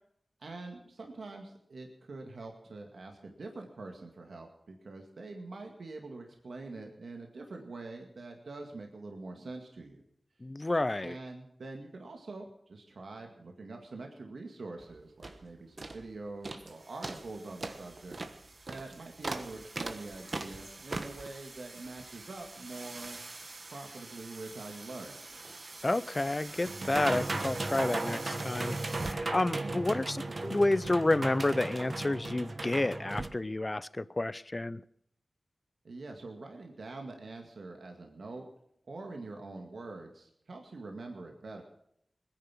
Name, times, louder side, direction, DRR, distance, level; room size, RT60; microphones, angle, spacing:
voice 1, 0.4-10.0 11.0-18.2 18.7-23.2 23.7-25.2 29.6-30.0 35.8-38.5 38.9-41.6, right 3 dB, 85° right, 2 dB, 2.0 m, -45 dB
voice 2, 10.4-11.2 25.8-28.8 29.0-34.8, left 2 dB, 35° left, 17 dB, 0.7 m, -30 dB
sound 1, 14.8-14.9 15.2-15.4 15.8-16.0 16.4-16.7 17.0-33.3, right 2 dB, 60° right, 1.4 m, -38 dB
21.0 x 10.5 x 6.1 m, 0.71 s
cardioid pair, 50°, 0 cm